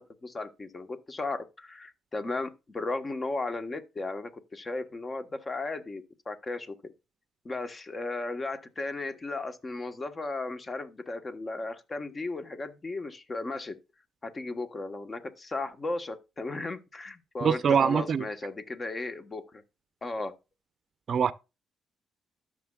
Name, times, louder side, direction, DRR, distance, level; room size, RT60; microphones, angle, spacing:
voice 1, 0.0-6.9 7.4-13.7 14.2-19.6 20.0-20.3, left 2 dB, 30° left, 1.2 m, -35 dB
voice 2, 17.4-18.3 21.1-21.3, right 7 dB, 55° right, 0.5 m, -23 dB
13.5 x 6.4 x 2.4 m
cardioid pair, 90°, 0 cm